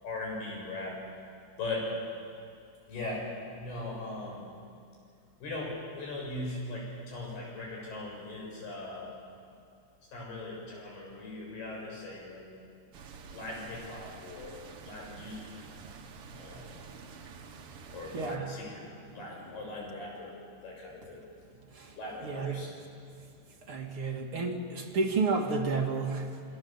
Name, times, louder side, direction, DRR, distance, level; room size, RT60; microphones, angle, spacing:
voice 1, 0.0-1.0 1.6-1.9 2.9-4.5 5.4-9.2 10.1-12.5 13.3-15.5 16.3-16.8 17.9-18.8 19.1-20.4 20.6-21.2 22.0-22.7, left 2 dB, 70° left, -2 dB, 9.2 m, -39 dB
sound 1, 12.9-18.4, right 5 dB, 65° right, 1.4 m, -49 dB
voice 2, 16.7-17.4 17.8-18.5 18.8-19.5 21.7-22.7 23.7-26.4, right 4 dB, 40° right, 1 dB, 2.6 m, -33 dB
27.5 x 24.5 x 7.5 m, 2.4 s
omnidirectional pair, 4.8 m